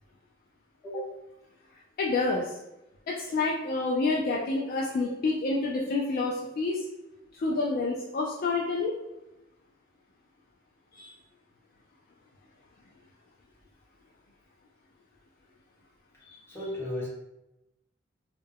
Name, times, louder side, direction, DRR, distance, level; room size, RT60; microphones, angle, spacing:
voice 1, 2.0-2.5 3.1-6.8 7.3-8.9 11.0-11.1, left 3 dB, 50° left, -2 dB, 0.3 m, -28 dB
voice 2, 16.5-17.1, left 1 dB, 10° left, -7 dB, 0.9 m, -34 dB
2.3 x 2.1 x 3.3 m, 0.91 s
head